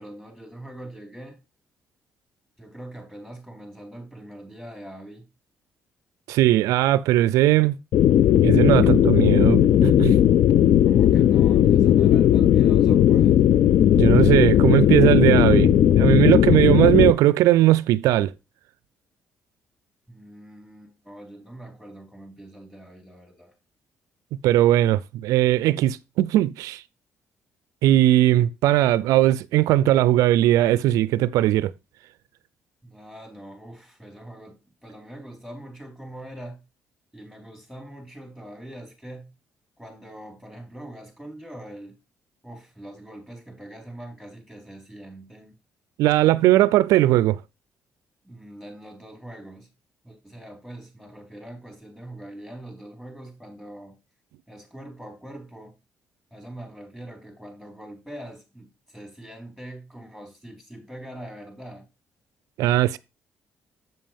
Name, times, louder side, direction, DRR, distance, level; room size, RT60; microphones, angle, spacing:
voice 1, 0.0-1.4 2.6-5.3 10.8-13.4 20.1-23.5 32.8-36.6 37.1-39.3 39.8-42.0 42.4-45.5 48.2-49.7 50.0-54.0 54.5-55.7 56.3-61.9, right 1 dB, ahead, 4.1 m, -42 dB
voice 2, 6.3-7.8 8.4-10.2 14.0-18.3 24.4-26.8 27.8-31.7 46.0-47.4 62.6-63.0, right 14 dB, 85° right, 0.3 m, -19 dB
sound 1, 7.9-17.1, left 11 dB, 70° left, 0.4 m, -17 dB
7.6 x 7.4 x 3.4 m
supercardioid pair, 65°, 6 cm